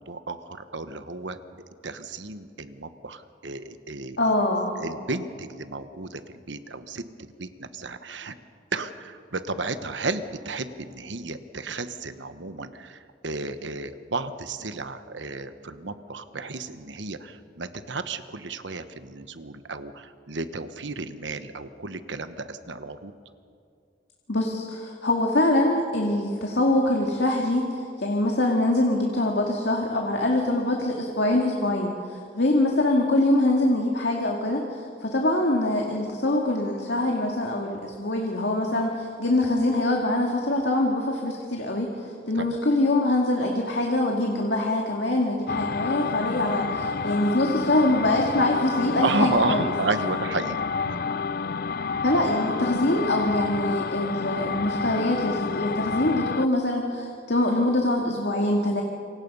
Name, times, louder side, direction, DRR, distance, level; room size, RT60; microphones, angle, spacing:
voice 1, 0.0-1.4 1.8-4.3 4.8-8.4 8.7-23.1 42.3-42.6 49.0-51.0, right 3 dB, 75° right, 10 dB, 1.2 m, -32 dB
voice 2, 4.2-4.7 24.3-49.7 52.0-58.8, left 1 dB, 65° left, 0 dB, 2.2 m, -24 dB
sound 1, 45.5-56.5, left 5 dB, 50° left, 0.5 m, -29 dB
27.5 x 24.5 x 5.5 m, 2.3 s
head